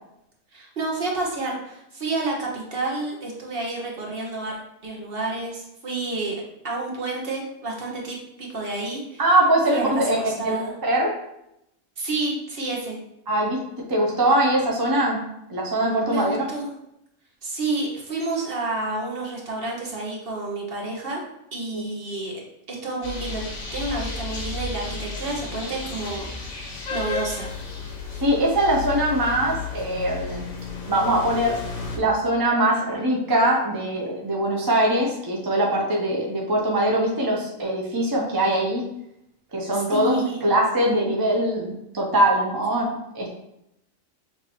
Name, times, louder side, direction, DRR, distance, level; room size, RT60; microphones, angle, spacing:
voice 1, 0.5-4.5 4.8-6.3 6.6-9.2 9.7-9.9 10.2-10.8 12.0-13.0 16.1-16.7 17.4-21.2 21.5-22.3 22.7-23.4 23.7-27.5 39.7-40.4, right 2 dB, 45° right, -2 dB, 1.1 m, -29 dB
voice 2, 9.2-10.6 10.8-11.1 13.3-13.6 13.9-15.2 15.5-16.5 21.7-21.9 28.2-30.5 30.9-31.6 31.9-38.8 39.5-43.3, right 1 dB, 25° right, -2 dB, 0.5 m, -22 dB
sound 1, 23.0-32.0, left 4 dB, 85° left, 1.3 m, -33 dB
6.5 x 2.7 x 2.9 m, 0.82 s
omnidirectional pair, 1.4 m